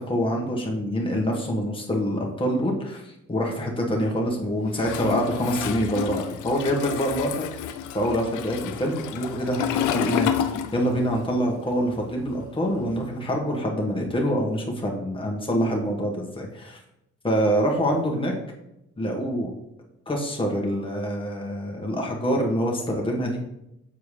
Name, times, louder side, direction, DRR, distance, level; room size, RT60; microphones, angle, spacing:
voice 1, 0.0-7.3 7.9-16.8 17.2-18.3 19.0-19.5 20.1-23.4, equal, 15° left, -1 dB, 1.5 m, -26 dB
Toilet flush, 4.8-11.2 11.5-13.1, left 9 dB, 85° left, 0.5 m, -30 dB
7.2 x 4.5 x 3.3 m, 0.85 s
cardioid pair, 90°, 30 cm